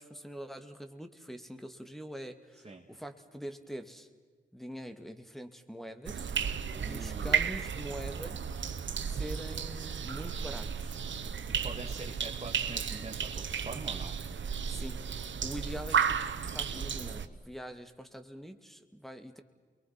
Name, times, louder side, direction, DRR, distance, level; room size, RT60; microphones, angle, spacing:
voice 1, 0.0-4.1 4.5-6.3 6.8-8.4 9.0-11.0 14.7-16.2 16.5-19.4, equal, ahead, 8 dB, 2.6 m, -44 dB
sound 1, 6.1-17.3, right 7 dB, 70° right, 1.2 m, -34 dB
voice 2, 6.7-7.5 11.5-14.2, right 3 dB, 30° right, 0 dB, 2.3 m, -44 dB
29.0 x 23.0 x 6.1 m, 1.5 s
cardioid pair, 45°, 20 cm